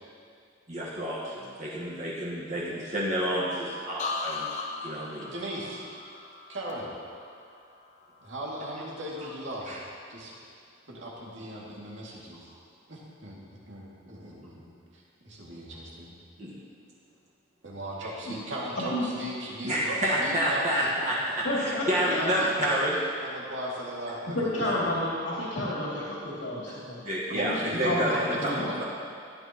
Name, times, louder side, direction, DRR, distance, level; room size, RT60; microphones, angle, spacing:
voice 1, 0.7-4.5 4.8-5.3 9.2-9.3 9.7-9.8 16.4-16.5 19.6-23.0 27.0-28.5 28.8-28.9, right 1 dB, 40° right, -7 dB, 1.4 m, -29 dB
sound 1, 4.0-7.8 8.2-8.7, left 4 dB, 35° left, 0.7 m, -38 dB
voice 2, 5.3-5.8 6.5-6.9 8.2-9.8 10.1-10.3 10.9-12.5 12.9-16.1 17.6-20.9 21.5-22.8 23.2-24.9 27.3-28.8, right 1 dB, 75° right, -5 dB, 2.3 m, -38 dB
voice 3, 21.4-22.4 24.3-27.0 27.4-27.6 27.8-28.1 28.3-28.6, left 1 dB, 75° left, -7 dB, 2.5 m, -30 dB
15.5 x 9.6 x 3.0 m, 2.4 s
head